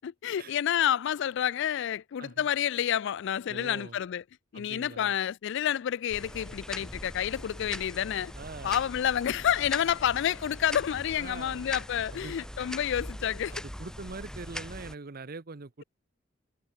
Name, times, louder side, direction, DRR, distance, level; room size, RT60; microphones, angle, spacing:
voice 1, 0.0-4.2 4.5-8.3 8.6-13.6, left 9 dB, 65° left, 0.3 m, -29 dB
voice 2, 3.5-4.0 4.5-5.2 8.4-8.8 11.2-11.6 12.1-12.4 13.6-15.8, right 3 dB, 50° right, 0.9 m, -43 dB
sound 1, 6.1-15.0, equal, 5° left, 2.1 m, -41 dB
head